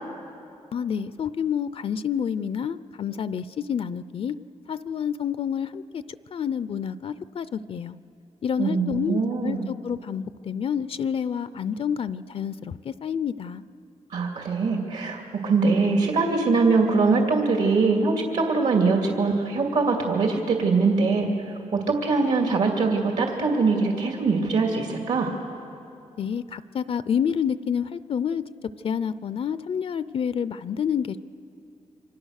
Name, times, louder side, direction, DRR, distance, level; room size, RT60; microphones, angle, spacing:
voice 1, 0.7-4.4 4.7-6.0 6.3-8.0 8.4-13.6 26.2-28.4 28.8-31.2, left 8 dB, 50° left, 15 dB, 0.5 m, -28 dB
voice 2, 8.6-9.6 14.1-25.3, right 4 dB, 75° right, 2 dB, 2.5 m, -22 dB
28.5 x 24.5 x 6.5 m, 2.7 s
wide cardioid pair, 120°, 12 cm